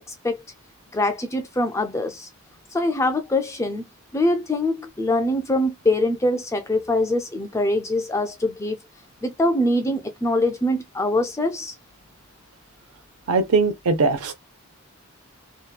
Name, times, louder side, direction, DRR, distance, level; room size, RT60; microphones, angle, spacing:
voice 1, 0.9-2.3 2.7-3.8 4.1-8.8 9.2-11.7, left 1 dB, 15° left, 0.3 m, -23 dB
voice 2, 13.3-14.3, right 4 dB, 85° right, 0.7 m, -20 dB
2.8 x 2.3 x 2.2 m
head